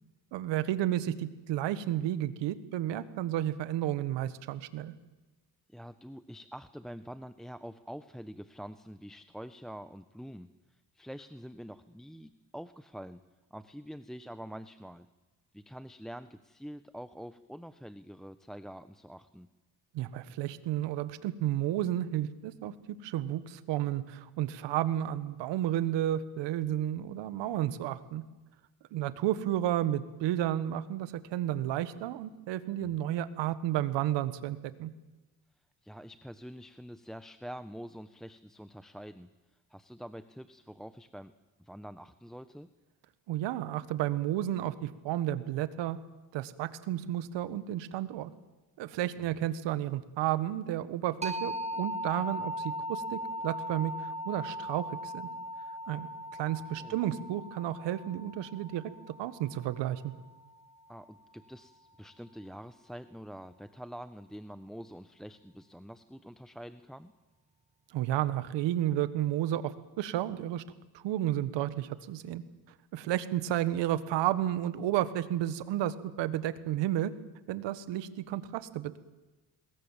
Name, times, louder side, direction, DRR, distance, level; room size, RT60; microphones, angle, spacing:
voice 1, 0.3-4.9 19.9-28.2 28.9-34.9 43.3-46.0 46.3-48.3 48.8-55.3 55.9-58.8 59.2-60.1 67.9-69.7 70.0-70.6 70.9-72.4 72.9-77.1 77.5-79.0, right 12 dB, 85° right, 13 dB, 1.7 m, -32 dB
voice 2, 5.7-13.2 13.5-15.1 15.5-19.5 32.8-32.9 35.8-41.3 41.6-42.7 49.2-49.5 56.8-57.0 60.9-67.1, equal, ahead, 11 dB, 1.2 m, -46 dB
sound 1, 51.2-60.6, equal, 15° right, 2.4 m, -39 dB
27.5 x 21.0 x 7.5 m, 1.1 s
supercardioid pair, 60°, 42 cm